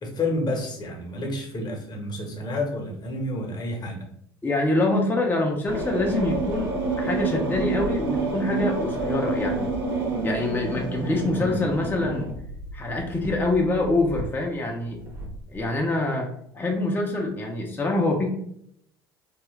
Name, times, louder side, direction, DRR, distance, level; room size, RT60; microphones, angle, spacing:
voice 1, 0.0-4.1, left 2 dB, 35° left, 1 dB, 0.9 m, -29 dB
voice 2, 4.4-6.7 7.0-9.7 10.2-12.3 12.7-15.0 15.5-16.3 16.5-18.3, left 2 dB, 15° left, 0 dB, 0.6 m, -25 dB
sound 1, 5.6-14.2 15.0-15.6, right 3 dB, 70° right, 1.0 m, -29 dB
3.0 x 2.3 x 3.0 m, 0.70 s
figure-of-eight pair, 60°, 13 cm